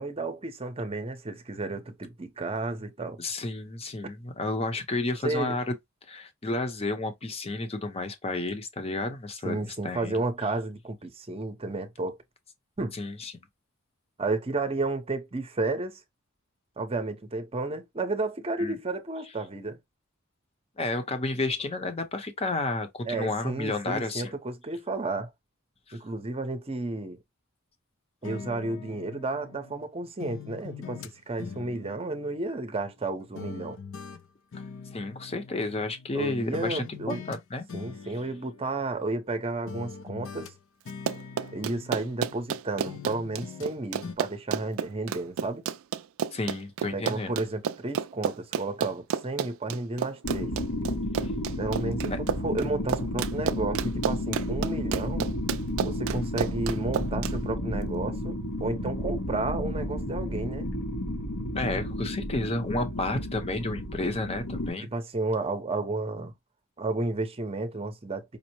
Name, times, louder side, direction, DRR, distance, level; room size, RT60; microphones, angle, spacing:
voice 1, 0.0-3.2 5.2-5.6 9.4-12.2 12.8-13.0 14.2-16.0 16.8-19.8 23.1-25.3 25.9-27.2 28.2-33.8 36.1-37.2 37.7-40.5 41.5-45.6 46.9-50.5 51.6-55.3 55.8-60.7 64.8-66.3 66.8-68.4, right 2 dB, 25° right, 0.7 m, -32 dB
voice 2, 3.2-5.7 6.1-10.2 12.9-13.3 18.6-18.8 20.8-24.3 25.9-26.0 34.9-37.7 46.3-47.3 51.2-51.3 52.1-52.2 61.5-64.9, left 2 dB, 30° left, 0.7 m, -31 dB
sound 1, 28.2-29.8 30.2-33.1 33.4-36.2 36.5-37.4 37.7-39.3 39.7-42.6 42.9-43.7 44.0-44.2, left 5 dB, 60° left, 0.4 m, -43 dB
Run, 40.9-57.3, right 8 dB, 65° right, 0.3 m, -31 dB
sound 2, 50.2-64.7, left 1 dB, 90° left, 1.1 m, -32 dB
5.2 x 2.0 x 2.9 m
head